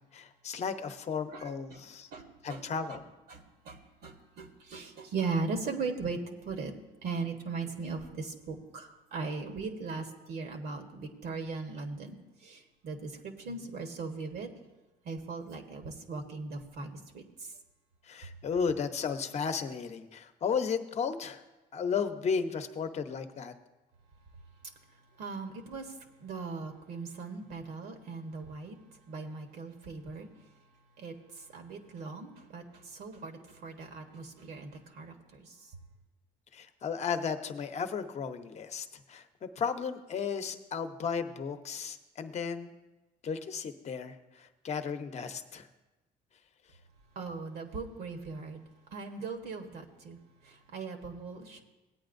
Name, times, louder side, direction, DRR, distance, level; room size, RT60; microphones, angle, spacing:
voice 1, 0.0-2.1 2.4-3.0 18.0-21.4 21.7-23.5 36.5-42.7 43.2-45.7, left 6 dB, 40° left, 8 dB, 0.8 m, -34 dB
voice 2, 2.1-2.6 2.9-3.0 3.3-6.7 7.0-12.1 12.4-14.5 15.0-17.2 25.2-25.9 26.2-28.8 29.1-30.3 31.0-35.5 47.1-48.6 48.9-50.2 50.4-51.6, right 4 dB, 70° right, 5 dB, 1.2 m, -39 dB
17.5 x 8.8 x 2.6 m, 1.1 s
cardioid pair, 110°, 17 cm